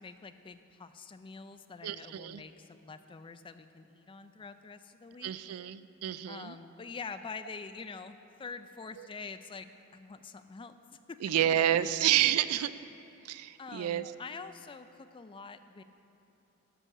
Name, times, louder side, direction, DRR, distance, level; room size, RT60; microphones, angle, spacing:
voice 1, 0.0-5.4 6.3-10.8 11.1-11.2 11.7-11.8 13.6-15.8, left 4 dB, 25° left, 10 dB, 0.3 m, -45 dB
voice 2, 1.8-2.4 5.2-6.6 9.0-9.1 11.2-12.7 13.2-14.1, right 11 dB, 85° right, 14 dB, 0.4 m, -29 dB
12.0 x 6.3 x 6.6 m, 2.9 s
head